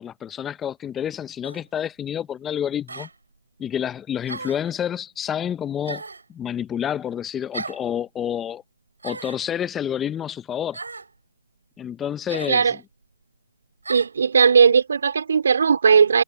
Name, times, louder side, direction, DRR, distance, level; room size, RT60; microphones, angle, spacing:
voice 1, 0.0-3.1 3.6-6.0 6.3-8.6 9.0-10.8 11.8-12.8, left 9 dB, 15° left, 0.9 m, -29 dB
sound 1, 1.4-1.7 2.9-3.1 4.3-4.7 5.9-6.3 7.5-7.8 9.0-9.4 10.7-11.1 12.3-12.6 13.8-14.1, right 3 dB, 85° right, 7.6 m, -35 dB
voice 2, 13.9-16.2, right 6 dB, 70° right, 3.7 m, -17 dB
hypercardioid pair, 145°, 0 cm